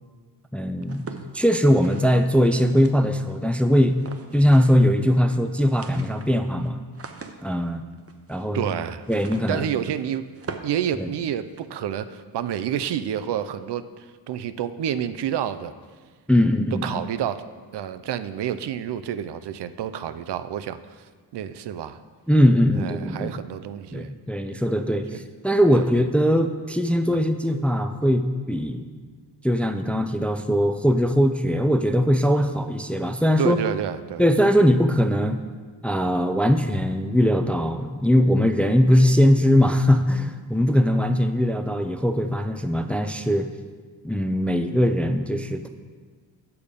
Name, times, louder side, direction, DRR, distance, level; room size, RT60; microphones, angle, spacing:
voice 1, 0.5-1.1 1.3-4.0 4.3-6.8 7.4-7.8 8.3-8.7 9.1-9.7 11.0-11.1 16.3-17.0 22.3-23.3 23.9-28.9 29.4-33.6 34.2-35.4 35.8-43.5 44.0-45.7, equal, 5° left, 8 dB, 0.4 m, -20 dB
sound 1, 0.8-3.3 3.9-4.9 5.1-5.2 5.5-11.7, right 5 dB, 35° right, 0.7 m, -43 dB
voice 2, 8.5-9.0 9.5-10.2 10.6-15.7 16.8-17.4 17.7-20.8 21.3-22.0 22.8-24.1 25.1-25.2 25.7-25.9 33.4-34.2, right 9 dB, 80° right, 12 dB, 0.5 m, -29 dB
6.9 x 6.7 x 5.2 m, 1.5 s
cardioid pair, 85°, 41 cm